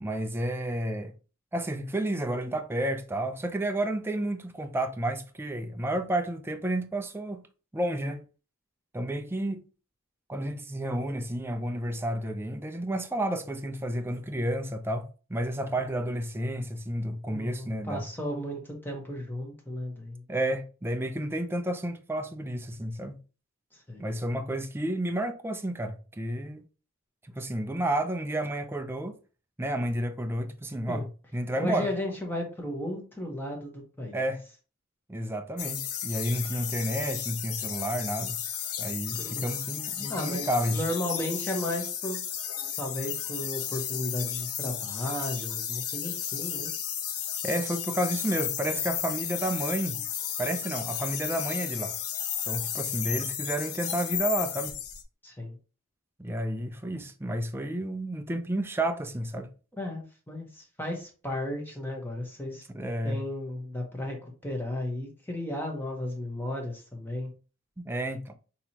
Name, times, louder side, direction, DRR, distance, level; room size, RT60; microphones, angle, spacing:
voice 1, 0.0-1.1 1.5-7.4 7.7-8.2 8.9-9.6 10.3-18.0 20.3-23.2 24.0-26.6 27.3-29.1 29.6-31.1 31.3-31.9 34.1-34.4 35.1-38.4 38.8-40.8 47.4-50.0 50.4-51.9 52.5-54.8 56.2-59.5 62.7-63.2 67.9-68.3, right 1 dB, 10° right, 0.4 m, -31 dB
voice 2, 17.3-20.2 23.9-24.0 30.9-31.1 31.6-34.2 39.1-39.5 40.1-42.2 42.8-46.7 55.2-55.6 59.7-62.6 63.0-64.2 64.4-67.3, left 1 dB, 10° left, 1.0 m, -34 dB
sound 1, 35.6-55.0, left 9 dB, 85° left, 0.7 m, -33 dB
5.9 x 2.9 x 2.8 m
head